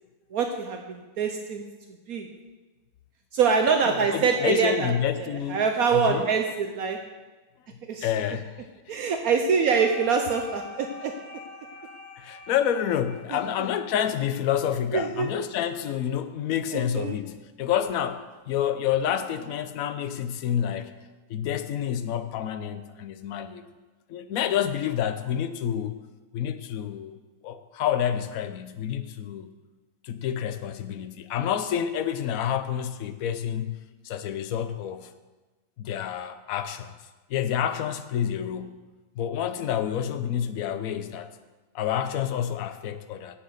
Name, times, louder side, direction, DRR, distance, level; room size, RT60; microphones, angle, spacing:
voice 1, 0.3-1.6 2.1-2.3 3.3-4.9 5.2-7.0 7.9-8.1 8.9-11.1 14.9-15.3 16.7-17.2, right 5 dB, 70° right, 4 dB, 1.2 m, -24 dB
voice 2, 3.8-5.7 5.9-6.3 8.0-8.7 12.2-20.9 21.3-23.6 24.1-26.0 26.3-27.1 27.4-29.5 30.0-33.8 34.0-35.1 35.8-36.9 37.3-38.8 39.1-41.3 41.7-43.4, left 9 dB, 65° left, 10 dB, 1.1 m, -28 dB
sound 1, 9.7-14.8, left 4 dB, 30° left, 3.0 m, -44 dB
10.0 x 7.9 x 6.5 m, 1.2 s
omnidirectional pair, 1.7 m